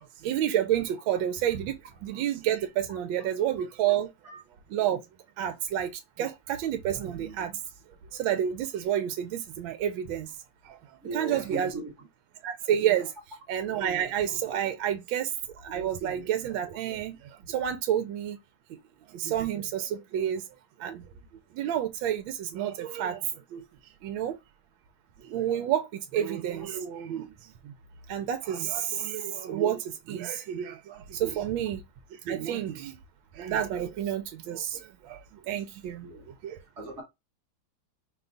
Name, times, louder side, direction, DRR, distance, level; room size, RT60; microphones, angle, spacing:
voice 1, 0.2-1.7 2.0-4.1 4.7-5.0 5.4-5.9 6.2-7.5 8.1-10.3 10.7-10.8 11.1-11.7 12.4-13.1 13.5-15.3 15.6-17.2 17.5-18.4 19.1-20.4 20.8-21.0 21.6-23.3 23.5-23.6 24.0-24.4 25.3-27.3 28.1-31.8 32.3-32.9 33.4-35.2 35.5-36.1 36.4-36.6, right 10 dB, 80° right, 1.3 m, -29 dB
voice 2, 11.0-11.9 31.5-31.6 36.0-36.3 36.8-37.0, right 3 dB, 45° right, 1.1 m, -37 dB
5.3 x 2.3 x 3.8 m
omnidirectional pair, 2.2 m